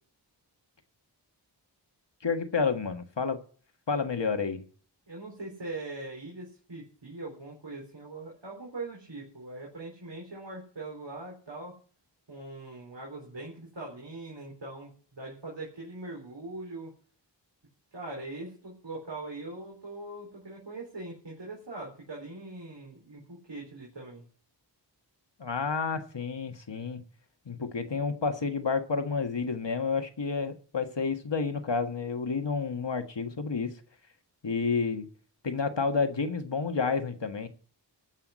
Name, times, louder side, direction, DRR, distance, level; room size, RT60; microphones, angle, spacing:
voice 1, 2.2-3.4 3.9-4.6 25.4-27.0 27.5-33.7 34.4-35.1 35.4-37.5, left 5 dB, 75° left, 1.7 m, -30 dB
voice 2, 5.1-11.7 12.3-16.9 17.9-24.3, right 2 dB, 75° right, 4.1 m, -41 dB
14.0 x 5.9 x 8.1 m
wide cardioid pair, 60°, 43 cm